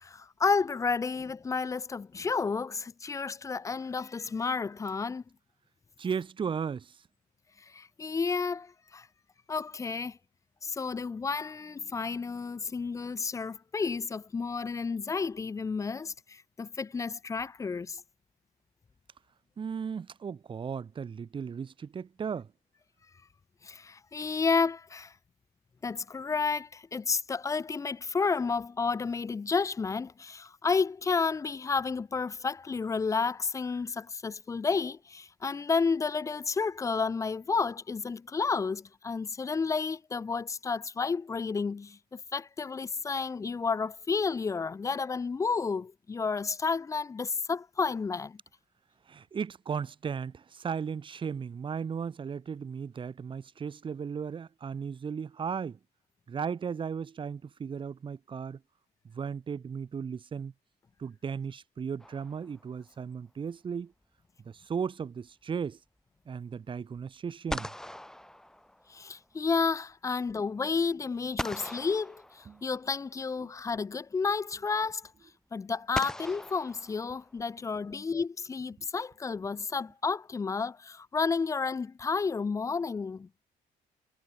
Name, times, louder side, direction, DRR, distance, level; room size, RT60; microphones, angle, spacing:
voice 1, 0.0-5.2 7.7-9.1 9.5-10.2 10.6-18.0 23.6-25.1 25.8-48.4 68.9-75.1 75.5-83.3, left 5 dB, 20° left, 0.4 m, -31 dB
voice 2, 6.0-7.0 19.6-22.5 49.1-55.8 56.3-58.6 59.0-60.5 61.0-63.9 64.4-65.8 66.3-67.7 72.5-72.6 73.4-73.5 78.8-78.9, right 6 dB, 30° right, 0.9 m, -36 dB
sound 1, 62.0-62.9 67.0-67.1 67.5-69.2 71.4-73.0 74.3-74.4 75.9-77.6, left 1 dB, 5° left, 0.8 m, -40 dB
cardioid pair, 110°, 17 cm